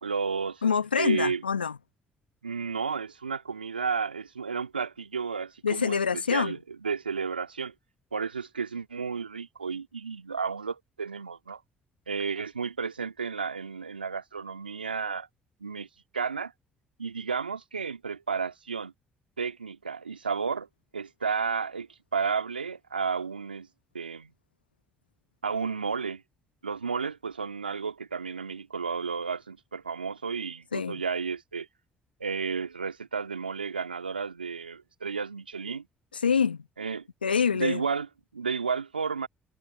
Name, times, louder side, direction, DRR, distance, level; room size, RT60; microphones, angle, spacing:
voice 1, 0.0-0.6 1.0-1.4 2.4-6.0 6.3-7.7 8.1-11.6 12.1-15.3 15.6-15.9 16.1-16.5 17.0-18.9 19.4-20.7 20.9-23.7 23.9-24.3 25.4-26.2 26.6-31.7 32.2-35.9 36.8-37.1 37.5-39.3, right 5 dB, 90° right, 2.1 m, -32 dB
voice 2, 0.6-1.8 5.6-6.5 30.7-31.0 36.2-36.6 37.2-37.8, left 6 dB, 90° left, 1.1 m, -25 dB
figure-of-eight pair, 45°, 5 cm